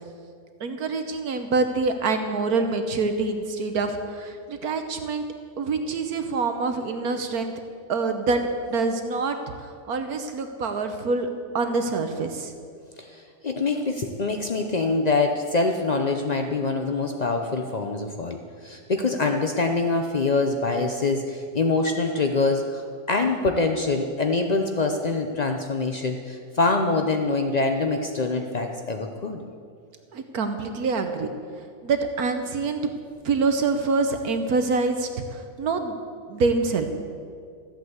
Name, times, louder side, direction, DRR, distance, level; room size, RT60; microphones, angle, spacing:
voice 1, 0.6-5.2 5.6-7.5 7.9-8.4 8.7-9.4 9.9-11.3 11.5-12.5 30.1-31.3 31.6-32.9 33.2-36.0 36.3-36.9, right 4 dB, 65° right, 7 dB, 1.3 m, -25 dB
voice 2, 13.0-22.8 23.1-29.4, left 3 dB, 70° left, 4 dB, 0.4 m, -25 dB
14.0 x 8.3 x 8.0 m, 2.2 s
omnidirectional pair, 1.9 m